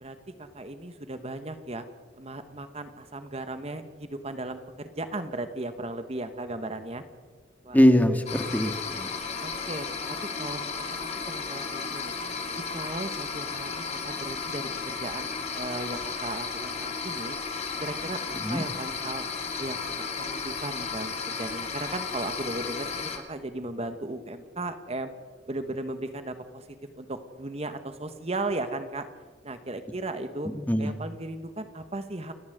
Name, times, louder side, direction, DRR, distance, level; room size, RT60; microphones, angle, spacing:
voice 1, 0.0-1.9 2.2-7.0 7.6-7.8 9.4-9.9 10.4-12.1 12.7-17.4 17.8-19.2 19.6-25.1 25.5-26.7 27.0-29.1 29.4-30.5 30.8-32.3, right 2 dB, 35° right, 9 dB, 1.3 m, -36 dB
voice 2, 7.7-9.1 18.4-18.6 30.5-30.9, equal, 10° left, 6 dB, 1.8 m, -22 dB
sound 1, 8.3-23.2, left 5 dB, 35° left, 2.6 m, -34 dB
29.5 x 13.0 x 8.0 m, 1.4 s
head